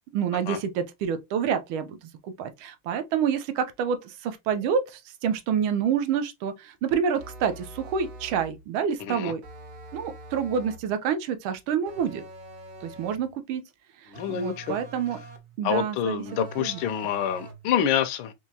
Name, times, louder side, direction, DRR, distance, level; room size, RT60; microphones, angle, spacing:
voice 1, 0.1-2.0 2.2-9.4 9.9-12.2 12.8-13.6 14.0-15.2 15.6-16.2 16.6-16.8, right 7 dB, 85° right, 1.5 m, -28 dB
sound 1, 7.2-8.6 9.4-10.9 11.9-13.3 14.1-15.6 16.3-17.7, right 2 dB, 55° right, 1.1 m, -44 dB
voice 2, 9.0-9.3 14.1-14.8 15.6-18.3, left 9 dB, 85° left, 1.4 m, -27 dB
4.6 x 2.8 x 2.7 m
omnidirectional pair, 2.2 m